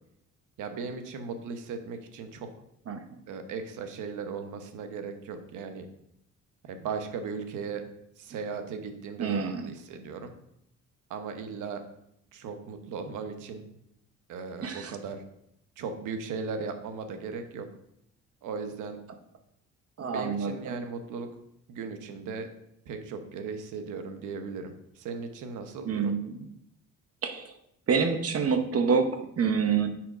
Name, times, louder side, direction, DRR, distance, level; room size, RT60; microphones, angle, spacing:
voice 1, 0.6-2.5 3.3-5.9 6.6-7.8 8.2-10.3 11.1-11.8 12.3-13.7 14.3-15.2 15.8-17.7 18.4-19.0 20.0-21.3 21.7-22.5 22.9-26.1, right 5 dB, 85° right, 7 dB, 1.0 m, -37 dB
voice 2, 9.2-9.7 14.6-14.9 20.0-20.8 25.9-26.4 27.2-27.5 27.9-29.9, right 5 dB, 50° right, 6 dB, 0.8 m, -27 dB
5.9 x 5.0 x 5.0 m, 0.77 s
cardioid pair, 90°, 30 cm